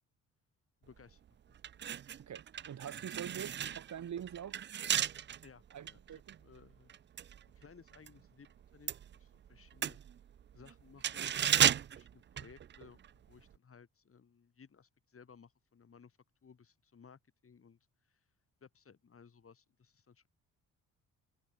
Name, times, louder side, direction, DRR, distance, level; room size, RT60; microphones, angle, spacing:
voice 1, 0.8-1.2 1.5-1.6 5.4-6.9 7.5-10.0 10.5-11.3 11.9-17.8 18.1-18.2 18.6-20.3, left 6 dB, 40° left, 6.1 m, -60 dB
sound 1, 1.0-1.1 1.6-8.2 8.5-13.1 13.4-13.6, right 9 dB, 35° right, 0.4 m, -35 dB
voice 2, 2.3-4.6 5.7-6.4, right 9 dB, 55° right, 2.8 m, -44 dB
cardioid pair, 90°, 33 cm